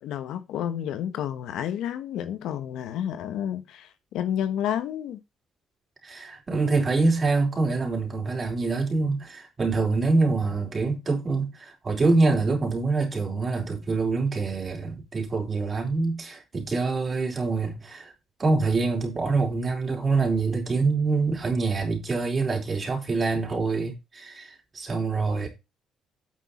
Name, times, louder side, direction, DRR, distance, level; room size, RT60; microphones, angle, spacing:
voice 1, 0.0-5.2, left 10 dB, 85° left, 1.1 m, -30 dB
voice 2, 6.0-18.1 18.4-25.5, right 3 dB, 35° right, 4.6 m, -25 dB
8.9 x 6.3 x 4.3 m
cardioid pair, 90°, 0 cm